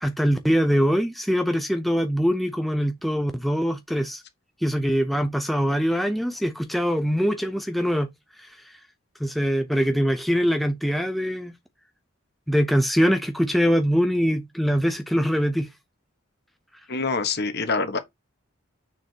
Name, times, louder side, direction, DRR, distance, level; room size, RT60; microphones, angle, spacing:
voice 1, 0.0-4.2 4.6-8.1 8.4-8.8 9.2-11.5 12.5-15.7, equal, ahead, 0.5 m, -23 dB
voice 2, 16.9-18.0, left 4 dB, 50° left, 1.3 m, -25 dB
6.6 x 6.3 x 2.8 m
head